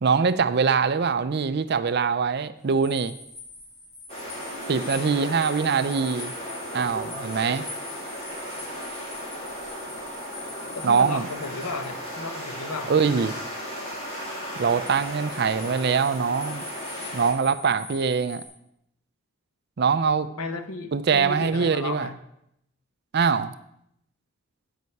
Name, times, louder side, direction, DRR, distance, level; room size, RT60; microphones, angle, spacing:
voice 1, 0.0-3.1 4.7-6.3 6.7-7.7 10.8-11.3 12.9-13.3 14.6-16.6 17.1-18.4 19.8-20.3 20.9-22.1 23.1-23.5, right 5 dB, 50° right, 13 dB, 0.4 m, -23 dB
sound 1, 2.6-12.0 14.5-18.5, left 3 dB, 65° left, 3.7 m, -43 dB
sound 2, 4.1-17.3, equal, 25° left, 2.2 m, -36 dB
voice 2, 10.9-12.9 20.4-22.2, left 3 dB, 90° left, 8 dB, 0.9 m, -34 dB
9.4 x 8.0 x 4.6 m, 0.77 s
head